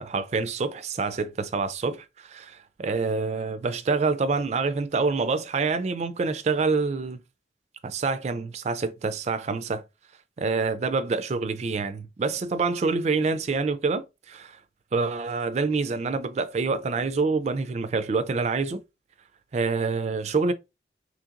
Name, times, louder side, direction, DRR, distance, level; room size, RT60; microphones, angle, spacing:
voice 1, 0.0-7.2 7.8-9.8 10.4-14.6 14.9-18.8 19.5-20.5, right 4 dB, 35° right, 0.3 m, -26 dB
2.9 x 2.7 x 2.4 m
head